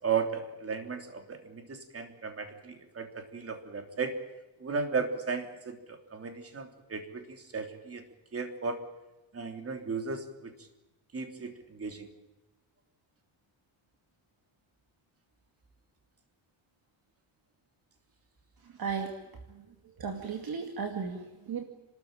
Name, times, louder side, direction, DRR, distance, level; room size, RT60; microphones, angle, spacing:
voice 1, 0.0-4.1 4.6-8.0 8.3-8.8 9.3-10.5 11.1-12.1, right 5 dB, 30° right, 5 dB, 3.3 m, -35 dB
voice 2, 18.6-19.2 19.5-19.6 20.0-21.6, right 6 dB, 45° right, 4 dB, 2.4 m, -35 dB
30.0 x 13.5 x 9.0 m, 1.1 s
cardioid pair, 150°, 49 cm